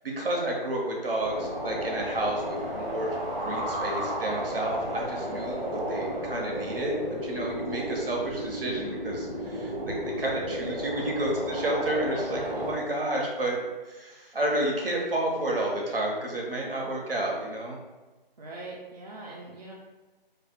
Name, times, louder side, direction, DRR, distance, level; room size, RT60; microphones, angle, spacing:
voice 1, 0.2-6.9 7.2-13.6 13.8-17.8, right 1 dB, 70° right, -1 dB, 1.1 m, -31 dB
sound 1, 1.2-12.8, right 1 dB, 10° left, 0.6 m, -33 dB
voice 2, 12.2-12.7 18.4-19.7, right 2 dB, 45° right, -4 dB, 0.5 m, -42 dB
3.2 x 2.1 x 4.2 m, 1.2 s
figure-of-eight pair, 165°, 29 cm